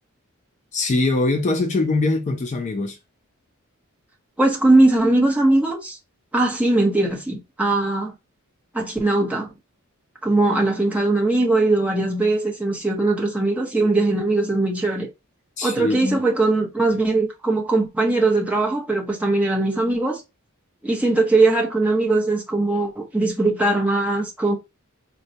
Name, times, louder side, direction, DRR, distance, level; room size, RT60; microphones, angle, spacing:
voice 1, 0.7-3.0 15.6-16.2, left 2 dB, 35° left, 0.4 m, -22 dB
voice 2, 4.4-6.0 6.3-8.1 8.7-9.5 10.2-15.1 15.6-20.2 20.8-24.6, right 2 dB, 5° right, 0.7 m, -20 dB
3.9 x 2.1 x 2.7 m
head